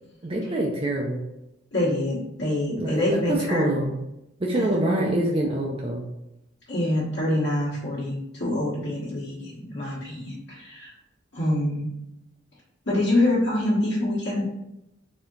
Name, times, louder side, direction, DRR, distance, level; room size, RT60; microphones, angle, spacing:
voice 1, 0.2-1.3 2.8-4.0 4.4-6.0, right 1 dB, 30° right, -1 dB, 0.5 m, -25 dB
voice 2, 1.7-3.9 4.5-4.8 6.7-10.9 11.3-11.9 12.8-14.4, left 1 dB, 65° left, -9 dB, 1.3 m, -26 dB
4.2 x 2.8 x 3.8 m, 0.87 s
head